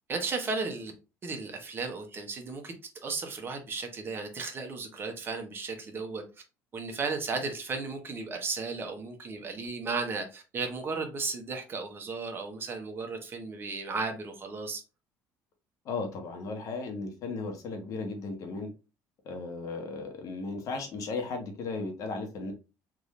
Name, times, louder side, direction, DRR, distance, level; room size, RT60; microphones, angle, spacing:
voice 1, 0.1-0.9 1.2-2.7 3.0-6.2 6.7-14.8, right 4 dB, 30° right, 0.9 m, -35 dB
voice 2, 15.8-18.7 19.2-22.5, left 3 dB, 55° left, 1.1 m, -35 dB
3.6 x 2.6 x 3.1 m
cardioid pair, 135°, 7 cm